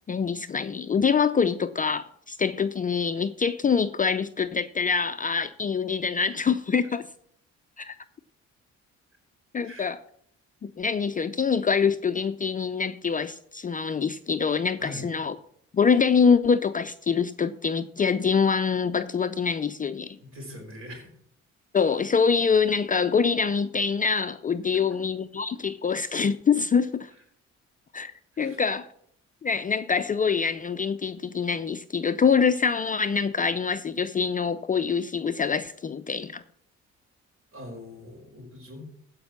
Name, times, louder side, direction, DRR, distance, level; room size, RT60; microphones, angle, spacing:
voice 1, 0.1-7.1 7.8-8.0 9.5-10.0 10.6-15.3 15.7-20.2 21.7-27.1 27.9-28.1 28.4-28.9 29.4-36.4, left 6 dB, 30° left, 10 dB, 0.5 m, -25 dB
voice 2, 20.2-21.1 24.9-25.0 28.3-28.6 37.5-38.8, left 1 dB, 45° right, 3 dB, 4.4 m, -42 dB
15.5 x 5.3 x 5.9 m, 0.67 s
cardioid pair, 90°, 30 cm